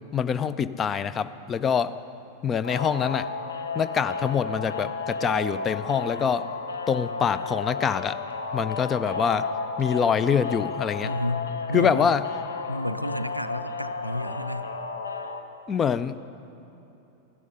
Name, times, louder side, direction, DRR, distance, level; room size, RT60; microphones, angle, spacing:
voice 1, 0.1-1.9 2.4-3.3 3.8-6.5 6.9-8.2 8.5-9.5 9.8-11.1 11.7-12.2 15.7-16.2, left 7 dB, 25° left, 15 dB, 0.4 m, -25 dB
sound 1, 2.6-15.4, left 4 dB, 70° left, 0.7 m, -33 dB
voice 2, 11.0-12.1 12.7-14.7, left 1 dB, 90° right, 11 dB, 0.4 m, -31 dB
13.5 x 11.0 x 5.4 m, 2.9 s
figure-of-eight pair, 90°, 0 cm